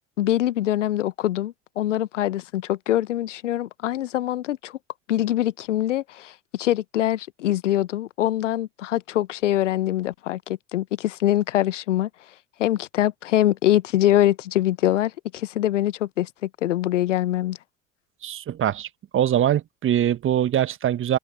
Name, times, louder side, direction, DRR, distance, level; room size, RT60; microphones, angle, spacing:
voice 1, 0.2-4.7 5.1-12.1 12.6-17.6, left 13 dB, 70° left, 1.1 m, -24 dB
voice 2, 18.2-18.9 19.1-21.2, right 11 dB, 35° right, 1.3 m, -22 dB
open air
figure-of-eight pair, 70°, 37 cm